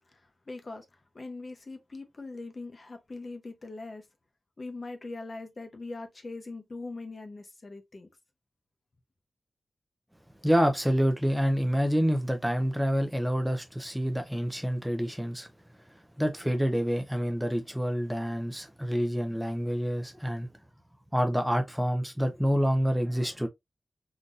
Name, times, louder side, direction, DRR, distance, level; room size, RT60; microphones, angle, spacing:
voice 1, 0.1-4.1 4.6-8.1, left 3 dB, 40° left, 0.8 m, -41 dB
voice 2, 10.4-15.5 16.2-20.5 21.1-23.5, equal, 5° right, 0.5 m, -27 dB
3.8 x 2.6 x 2.4 m
wide cardioid pair, 110°, 0 cm